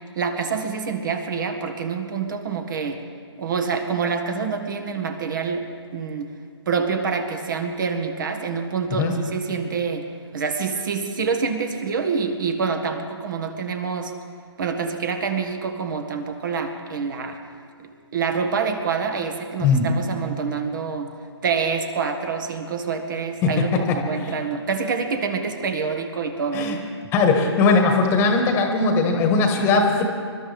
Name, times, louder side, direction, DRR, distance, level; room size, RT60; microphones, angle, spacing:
voice 1, 0.1-3.0 3.4-5.7 5.9-6.3 6.6-10.1 10.3-14.1 14.6-17.4 17.8-21.1 21.4-26.8, right 5 dB, 45° right, 6 dB, 1.6 m, -26 dB
voice 2, 23.4-24.0 24.2-24.3 26.5-26.8 27.1-30.1, left 4 dB, 15° left, 3 dB, 1.5 m, -19 dB
27.0 x 12.5 x 3.5 m, 2.2 s
figure-of-eight pair, 145°, 14 cm